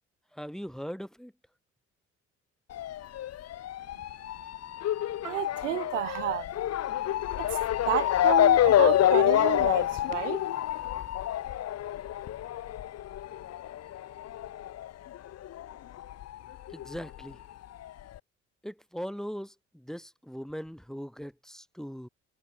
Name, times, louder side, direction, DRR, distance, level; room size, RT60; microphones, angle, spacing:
voice 1, 0.3-1.3 16.7-17.4 18.6-22.1, equal, ahead, 2.4 m, -40 dB
Motor vehicle (road) / Siren, 2.7-15.7 16.0-17.2 17.8-17.9 18.2-18.3, left 12 dB, 45° left, 0.9 m, -27 dB
voice 2, 5.2-6.5 7.4-7.6 7.8-10.4, right 13 dB, 85° right, 0.9 m, -31 dB
figure-of-eight pair, 50°, 36 cm